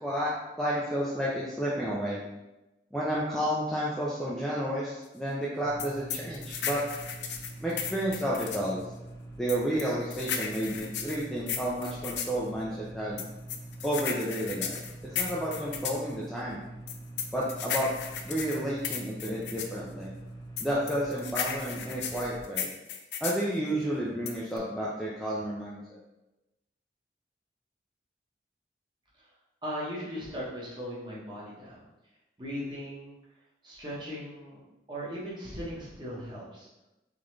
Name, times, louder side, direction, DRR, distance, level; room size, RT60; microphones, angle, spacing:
voice 1, 0.0-2.2 2.9-6.8 7.6-8.8 9.4-13.2 13.8-16.6 17.3-17.9 18.2-20.1 20.6-22.7 23.2-26.0, equal, ahead, -6 dB, 0.5 m, -31 dB
sound 1, 5.6-22.4, right 2 dB, 25° left, 1.0 m, -45 dB
sound 2, 5.8-8.7 9.5-12.4 13.2-16.0 16.9-19.8 20.6-23.4 24.3-24.6, left 7 dB, 80° left, 0.5 m, -35 dB
voice 2, 29.6-31.8 32.4-33.1 33.6-34.6 34.9-36.7, equal, 25° right, -6 dB, 1.2 m, -38 dB
3.8 x 3.6 x 3.2 m, 0.98 s
head